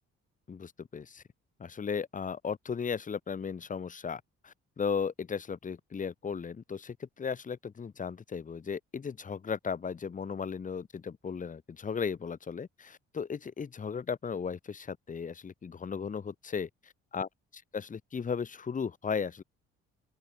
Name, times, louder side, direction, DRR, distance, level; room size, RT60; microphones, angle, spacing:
voice 1, 0.5-1.2 1.6-17.3 17.7-19.4, left 6 dB, 25° left, 0.6 m, -36 dB
open air
hypercardioid pair, 45°, 34 cm